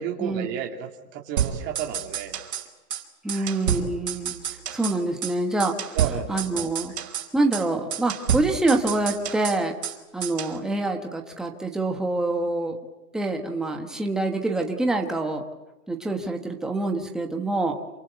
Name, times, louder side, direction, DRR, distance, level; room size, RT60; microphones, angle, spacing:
voice 1, 0.0-2.4 3.3-3.5 5.9-6.7, right 8 dB, 20° right, 2 dB, 2.8 m, -33 dB
sound 1, 1.4-2.6 2.9-3.0 3.3-5.0 5.2-5.3 5.6-7.3 7.5-7.6 7.9-10.0 10.2-10.6, right 9 dB, 65° right, 5.2 m, -29 dB
voice 2, 3.2-4.4 4.7-6.0 6.3-6.9 7.3-9.7 10.1-12.8 13.1-15.4 15.9-17.8, right 2 dB, ahead, 2 dB, 1.2 m, -26 dB
28.0 x 26.0 x 8.1 m, 1.0 s
hypercardioid pair, 160°, 48 cm